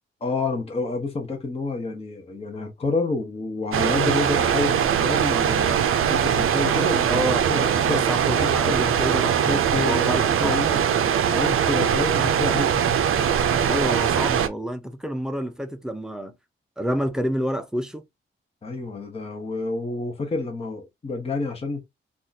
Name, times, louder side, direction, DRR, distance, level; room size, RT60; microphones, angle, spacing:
voice 1, 0.2-5.8 6.1-8.0 8.4-8.8 9.2-10.9 11.3-12.9 18.6-21.8, left 3 dB, 30° left, 0.8 m, -29 dB
sound 1, 3.7-14.5, right 8 dB, 90° right, 0.5 m, -21 dB
voice 2, 7.1-10.6 13.7-16.3 16.8-18.0, equal, 5° right, 0.4 m, -29 dB
2.8 x 2.4 x 3.9 m
wide cardioid pair, 155°, 21 cm